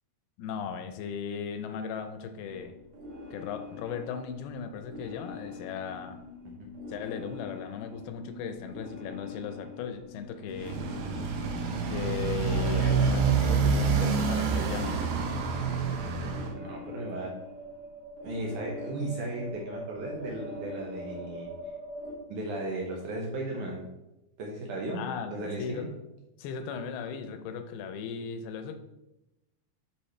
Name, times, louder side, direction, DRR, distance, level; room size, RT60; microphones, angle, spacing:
voice 1, 0.4-2.8 3.3-6.2 6.9-10.8 11.9-15.0 24.9-25.9 26.4-28.8, left 6 dB, 85° left, 8 dB, 2.6 m, -37 dB
sound 1, 2.4-22.1, left 2 dB, 40° right, 2.6 m, -43 dB
Motorcycle, 10.5-16.5, right 5 dB, 85° right, 2.8 m, -27 dB
voice 2, 16.5-17.3 18.2-21.5 22.3-23.9 24.4-25.0 25.3-25.9, right 2 dB, 65° right, -1 dB, 2.1 m, -35 dB
10.0 x 5.2 x 3.2 m, 0.95 s
omnidirectional pair, 4.4 m